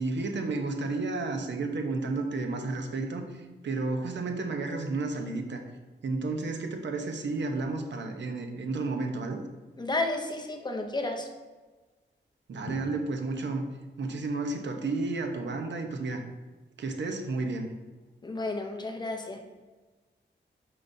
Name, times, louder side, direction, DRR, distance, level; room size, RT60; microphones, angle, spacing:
voice 1, 0.0-5.6 6.0-9.4 12.5-13.7 14.0-16.2 16.8-17.7, right 3 dB, 70° right, 4 dB, 0.9 m, -32 dB
voice 2, 9.8-11.3 12.7-12.8 18.2-19.4, left 2 dB, 20° left, 3 dB, 0.7 m, -32 dB
9.1 x 5.7 x 2.7 m, 1.3 s
wide cardioid pair, 175°, 19 cm